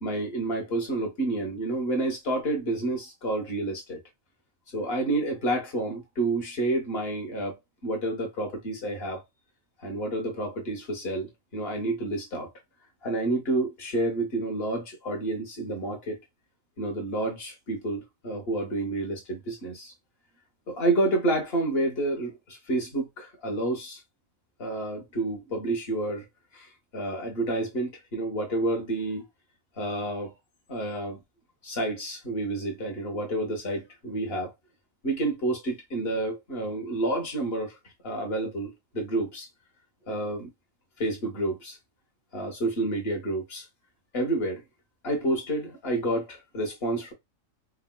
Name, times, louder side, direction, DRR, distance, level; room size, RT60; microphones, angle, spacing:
voice 1, 0.0-4.0 4.7-7.6 7.8-9.2 9.8-12.5 13.0-16.2 16.8-19.9 20.7-24.0 24.6-26.3 26.5-29.2 29.8-30.3 30.7-31.2 31.6-34.5 35.0-37.8 38.0-39.5 40.1-40.5 41.0-41.8 42.3-43.6 44.1-44.6 45.0-47.1, right 2 dB, 50° left, 1.3 m, -29 dB
4.8 x 2.1 x 2.2 m
omnidirectional pair, 1.4 m